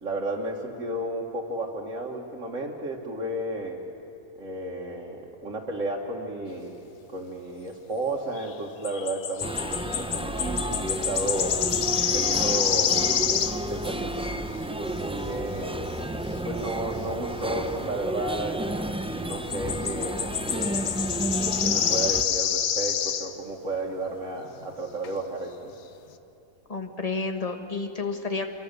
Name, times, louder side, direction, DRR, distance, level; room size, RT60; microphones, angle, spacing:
voice 1, 0.0-3.8 4.4-6.8 7.1-11.5 12.1-15.9 16.4-20.8 21.6-25.7, right 1 dB, 65° right, -3 dB, 2.0 m, -33 dB
sound 1, 8.4-8.5 8.8-13.6 19.3-23.4 24.6-24.7 25.0-25.1, left 9 dB, 70° left, 1.2 m, -27 dB
sound 2, 9.4-22.2, right 1 dB, 10° right, 0.4 m, -31 dB
voice 2, 26.7-28.5, left 4 dB, 25° left, 5 dB, 1.6 m, -30 dB
27.0 x 23.5 x 6.8 m, 3.0 s
omnidirectional pair, 1.5 m